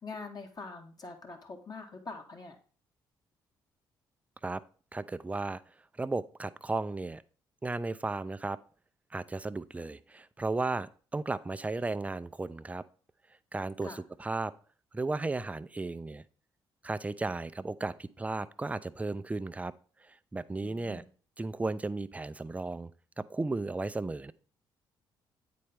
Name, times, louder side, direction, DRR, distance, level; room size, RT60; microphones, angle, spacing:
voice 1, 0.0-2.6 13.8-14.0 20.6-21.1, left 3 dB, 35° left, 3 dB, 1.1 m, -44 dB
voice 2, 4.9-5.6 6.0-7.2 7.6-8.6 9.1-12.8 13.5-14.5 14.9-16.2 16.8-19.7 20.1-21.0 21.4-22.9 23.2-24.3, right 3 dB, 15° right, 14 dB, 0.4 m, -34 dB
8.4 x 4.2 x 3.4 m, 0.40 s
hypercardioid pair, 45°, 11 cm